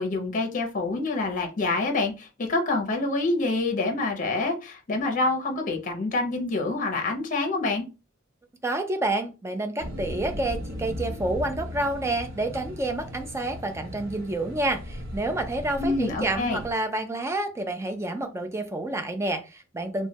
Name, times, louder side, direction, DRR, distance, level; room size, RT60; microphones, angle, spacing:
voice 1, 0.0-7.9 15.8-16.6, left 3 dB, 40° left, 0.6 m, -27 dB
voice 2, 8.6-20.1, right 2 dB, 15° right, 0.4 m, -29 dB
sound 1, 9.8-16.7, equal, 70° right, 0.8 m, -37 dB
3.2 x 2.2 x 2.7 m
head